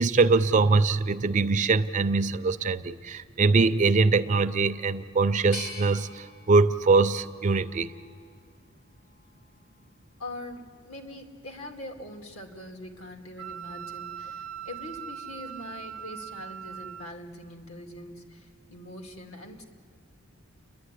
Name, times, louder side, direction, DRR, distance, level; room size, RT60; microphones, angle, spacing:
voice 1, 0.0-7.9, right 4 dB, 35° right, 0.5 m, -23 dB
sound 1, 5.5-8.4 9.0-9.8, left 3 dB, 55° left, 1.9 m, -45 dB
voice 2, 10.2-19.6, left 1 dB, 80° left, 2.5 m, -42 dB
Wind instrument woodwind instrument, 13.4-17.1, right 9 dB, 75° right, 0.7 m, -40 dB
30.0 x 11.0 x 9.9 m
head